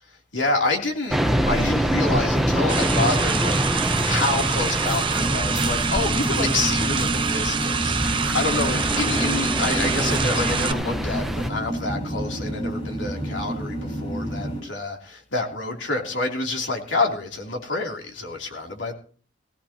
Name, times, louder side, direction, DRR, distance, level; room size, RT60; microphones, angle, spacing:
voice 1, 0.3-18.9, left 3 dB, 85° left, 3.0 m, -28 dB
sound 1, 1.1-11.5, equal, ahead, 0.8 m, -25 dB
sound 2, 2.7-10.7, right 6 dB, 30° right, 0.8 m, -26 dB
sound 3, 5.2-14.6, equal, 35° left, 7.6 m, -29 dB
19.5 x 16.5 x 2.9 m
head